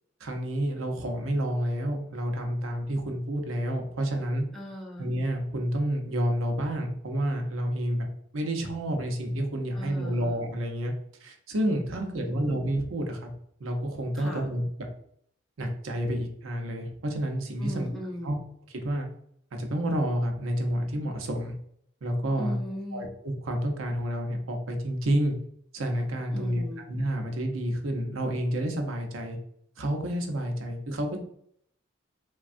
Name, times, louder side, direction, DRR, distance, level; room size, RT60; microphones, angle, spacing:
voice 1, 0.2-4.5 5.0-8.1 8.3-10.9 11.2-13.3 13.6-14.6 15.6-17.9 18.2-18.4 18.7-19.1 19.5-21.5 22.0-22.6 22.9-25.3 25.7-29.4 29.8-31.2, right 1 dB, 90° right, 3 dB, 0.6 m, -29 dB
voice 2, 4.5-5.0 9.7-10.4 12.0-12.5 14.1-14.4 17.6-18.4 22.4-23.1 26.3-26.8, equal, ahead, -3 dB, 0.5 m, -38 dB
3.4 x 2.2 x 2.5 m, 0.67 s
head